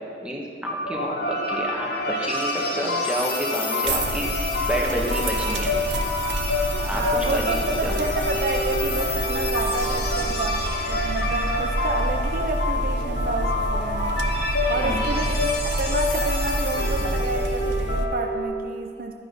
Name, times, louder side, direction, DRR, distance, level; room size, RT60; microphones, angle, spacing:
voice 1, 0.2-5.7 6.9-7.0 7.3-7.9 14.7-15.0, right 1 dB, 5° right, -2 dB, 1.6 m, -29 dB
sound 1, 0.7-18.4, left 2 dB, 90° left, 2.3 m, -29 dB
sound 2, 0.8-17.7, left 2 dB, 65° left, 2.0 m, -31 dB
sound 3, 3.9-18.1, right 1 dB, 80° right, 0.9 m, -28 dB
voice 2, 6.9-14.2 14.7-19.1, right 3 dB, 55° right, 4 dB, 0.7 m, -30 dB
11.5 x 10.0 x 5.6 m, 2.1 s
head